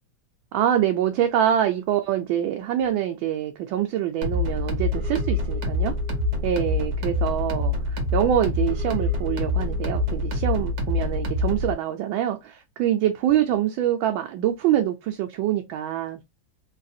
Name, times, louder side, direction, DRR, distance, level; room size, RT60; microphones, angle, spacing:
voice 1, 0.5-5.9 6.4-16.2, right 11 dB, 80° right, 1.3 m, -25 dB
sound 1, 4.2-11.7, left 2 dB, 55° right, 1.4 m, -26 dB
3.9 x 2.4 x 2.6 m
omnidirectional pair, 2.2 m